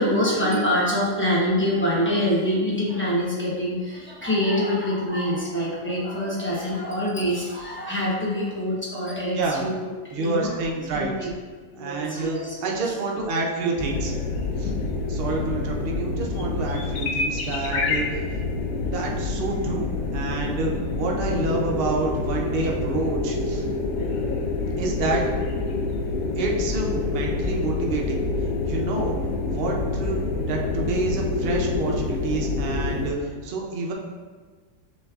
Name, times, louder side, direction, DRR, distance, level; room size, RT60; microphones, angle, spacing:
voice 1, 0.0-10.6 10.9-11.3 11.7-12.8, equal, 10° left, -7 dB, 0.6 m, -25 dB
voice 2, 10.1-11.3 11.7-14.1 14.6-14.7 15.1-18.2 18.9-23.6 24.8-25.2 26.4-28.2 28.7-29.2 29.5-30.2 30.5-33.9, right 3 dB, 60° right, -1 dB, 0.6 m, -28 dB
sound 1, 13.8-33.1, left 3 dB, 65° left, 0.9 m, -27 dB
6.5 x 3.1 x 2.4 m, 1.5 s
omnidirectional pair, 1.7 m